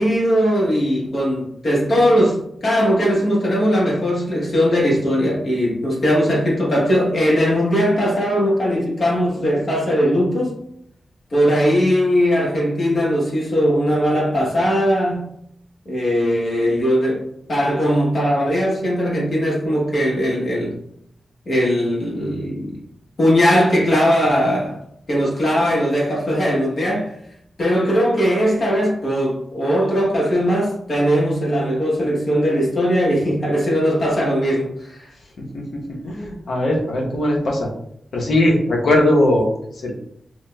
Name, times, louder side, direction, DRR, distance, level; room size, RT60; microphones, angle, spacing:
voice 1, 0.0-10.6 11.3-15.3 15.8-17.2 17.5-20.8 21.5-22.8 23.2-24.8 25.1-27.1 27.6-35.1, equal, 55° left, -4 dB, 1.1 m, -19 dB
voice 2, 35.4-37.7 38.1-39.5 39.8-39.9, left 1 dB, 80° left, -1 dB, 0.8 m, -19 dB
5.6 x 2.1 x 2.2 m, 0.71 s
wide cardioid pair, 110°, 0 cm